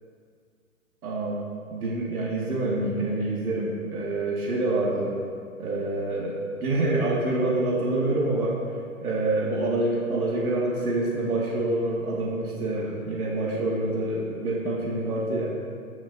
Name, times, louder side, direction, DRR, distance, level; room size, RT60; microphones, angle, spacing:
voice 1, 1.0-5.2 5.6-8.6 9.0-15.6, right 2 dB, 80° right, -4 dB, 2.1 m, -26 dB
18.5 x 6.3 x 2.7 m, 2.2 s
hypercardioid pair, 175°, 44 cm